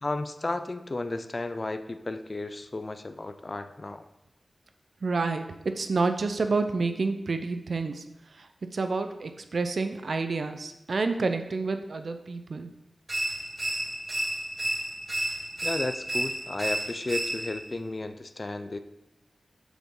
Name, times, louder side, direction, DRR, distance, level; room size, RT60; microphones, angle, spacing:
voice 1, 0.0-4.0 15.6-18.8, left 2 dB, 40° left, 9 dB, 0.5 m, -33 dB
voice 2, 5.0-8.0 8.3-12.7, right 3 dB, 70° right, 8 dB, 0.6 m, -29 dB
sound 1, 13.1-17.7, right 1 dB, 40° right, 1.6 m, -31 dB
7.0 x 6.2 x 3.8 m, 0.93 s
wide cardioid pair, 85°, 0 cm